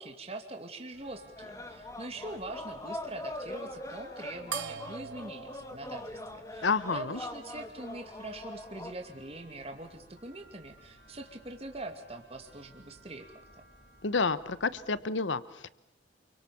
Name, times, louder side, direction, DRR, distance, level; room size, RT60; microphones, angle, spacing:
voice 1, 0.0-13.3, right 2 dB, 35° right, 4 dB, 2.5 m, -43 dB
sound 1, 0.9-15.0, left 1 dB, 65° left, 7.4 m, -57 dB
sound 2, 1.4-8.9, left 1 dB, 15° left, 2.0 m, -42 dB
sound 3, 4.5-7.3, right 8 dB, 85° right, 1.1 m, -43 dB
voice 2, 6.6-7.2 14.0-15.7, left 4 dB, 85° left, 16 dB, 1.1 m, -30 dB
29.0 x 24.0 x 7.1 m, 0.77 s
head